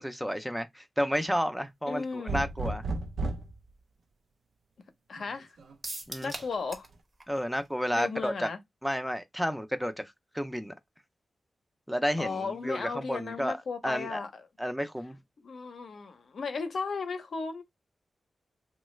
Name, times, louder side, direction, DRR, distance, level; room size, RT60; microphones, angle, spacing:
voice 1, 0.0-2.9 6.1-6.3 7.3-8.5 8.8-9.9 10.3-10.7 11.9-13.6 13.8-14.2 14.6-15.2, equal, ahead, 0.4 m, -31 dB
voice 2, 1.9-2.4 5.1-5.5 6.2-6.9 7.9-8.6 12.2-14.4 15.4-17.6, left 4 dB, 65° left, 0.6 m, -35 dB
sound 1, 2.3-3.5 5.2-5.7, right 2 dB, 90° right, 0.5 m, -33 dB
sound 2, 5.8-6.9 7.2-7.3 7.7-7.8, right 2 dB, 35° right, 0.7 m, -40 dB
3.1 x 2.3 x 3.0 m
wide cardioid pair, 160°, 0 cm